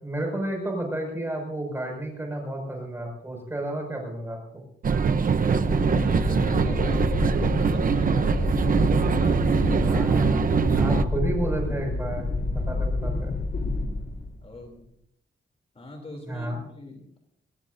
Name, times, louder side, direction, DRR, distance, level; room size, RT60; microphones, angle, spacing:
voice 1, 0.0-4.4 9.8-13.3 16.2-16.6, right 1 dB, 10° right, 1 dB, 5.9 m, -31 dB
sound 1, 4.8-11.0, right 6 dB, 45° right, 0.8 m, -23 dB
sound 2, 5.5-14.6, left 2 dB, 60° left, 3.8 m, -28 dB
voice 2, 5.9-8.6 9.1-10.4 11.1-11.3 14.4-14.9 15.7-17.2, left 2 dB, 30° left, 2 dB, 3.1 m, -40 dB
23.0 x 20.0 x 2.7 m, 0.72 s
wide cardioid pair, 170°, 20 cm